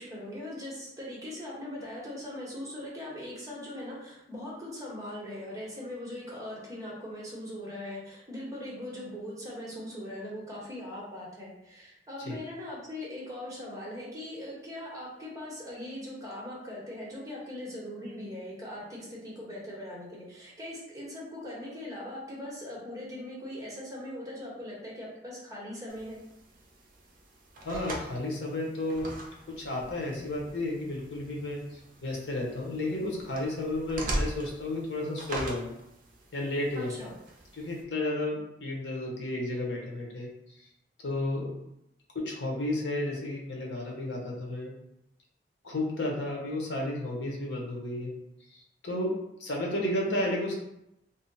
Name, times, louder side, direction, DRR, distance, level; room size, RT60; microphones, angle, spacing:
voice 1, 0.0-26.2 36.8-37.1, left 1 dB, 20° right, -5 dB, 0.9 m, -40 dB
sound 1, 25.9-37.8, right 1 dB, 50° right, 0.6 m, -41 dB
voice 2, 27.6-29.2 29.5-35.6 36.3-36.9 37.5-40.3 40.6-40.7 41.0-41.5 42.1-44.7 45.6-48.1 48.5-50.5, left 1 dB, 75° left, -1 dB, 0.8 m, -32 dB
2.6 x 2.0 x 3.9 m, 0.84 s
head